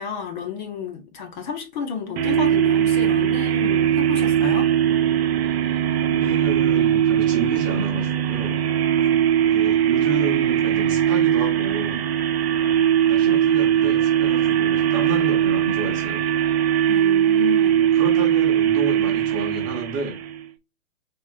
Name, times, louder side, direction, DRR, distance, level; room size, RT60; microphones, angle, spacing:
voice 1, 0.0-4.7 16.9-17.8, left 6 dB, 35° left, 0.7 m, -31 dB
sound 1, 2.2-20.4, right 10 dB, 50° right, 0.5 m, -20 dB
voice 2, 6.0-8.6 9.4-12.0 12.5-16.2 17.7-20.2, right 3 dB, 20° right, 0.9 m, -31 dB
3.6 x 2.8 x 2.6 m
hypercardioid pair, 135°, 42 cm